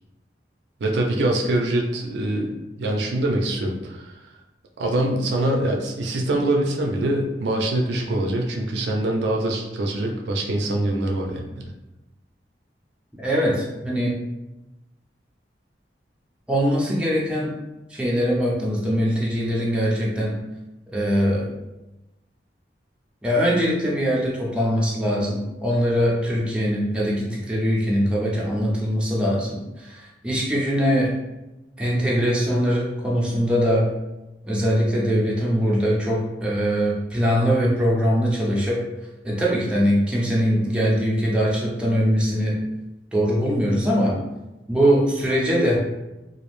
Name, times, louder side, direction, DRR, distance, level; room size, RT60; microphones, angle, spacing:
voice 1, 0.8-4.1 4.8-11.7, right 1 dB, 70° right, 0 dB, 0.4 m, -24 dB
voice 2, 13.2-14.2 16.5-17.5 17.9-20.3 20.9-21.5 23.2-31.1 31.8-33.9 34.4-38.8 39.2-42.6 43.1-44.2 44.7-45.8, equal, 5° right, -5 dB, 0.4 m, -22 dB
2.4 x 2.0 x 2.9 m, 1.0 s
head